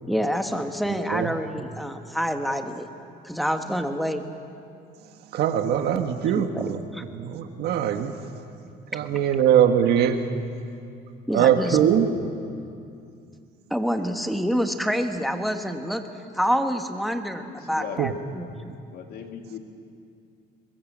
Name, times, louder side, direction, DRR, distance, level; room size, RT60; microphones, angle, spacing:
voice 1, 0.1-2.9 3.2-4.2 6.3-6.6 6.9-7.0 9.1-9.2 11.3-12.2 13.7-16.1 16.3-18.8, equal, ahead, 6 dB, 1.6 m, -27 dB
voice 2, 0.9-1.3 5.3-6.8 7.1-8.1 8.9-10.2 11.3-12.1 18.0-18.1, right 9 dB, 75° right, 6 dB, 1.6 m, -22 dB
voice 3, 17.4-18.1 18.9-19.6, left 8 dB, 65° left, 4 dB, 2.5 m, -38 dB
23.0 x 21.5 x 7.5 m, 2.5 s
cardioid pair, 110°, 17 cm